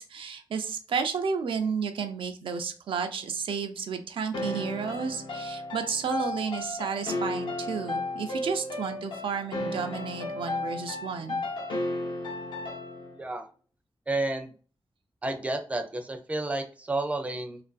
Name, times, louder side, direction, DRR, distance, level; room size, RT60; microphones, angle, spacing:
voice 1, 0.0-11.4, right 6 dB, 90° right, 7 dB, 0.4 m, -32 dB
sound 1, 4.3-13.2, left 2 dB, 75° left, 0.6 m, -34 dB
voice 2, 14.1-14.5 15.2-17.6, right 2 dB, 15° right, 6 dB, 0.4 m, -31 dB
2.5 x 2.4 x 2.3 m, 0.38 s
wide cardioid pair, 135°, 9 cm